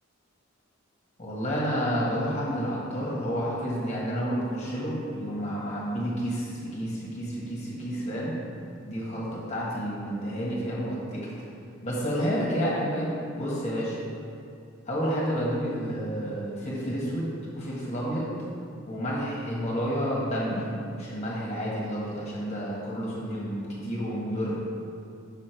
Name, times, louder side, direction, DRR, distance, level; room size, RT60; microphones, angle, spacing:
voice 1, 1.2-8.4 8.8-11.3 11.8-14.0 14.9-18.3 18.9-24.6, equal, 35° left, -5 dB, 1.5 m, -30 dB
6.6 x 5.8 x 4.5 m, 2.6 s
head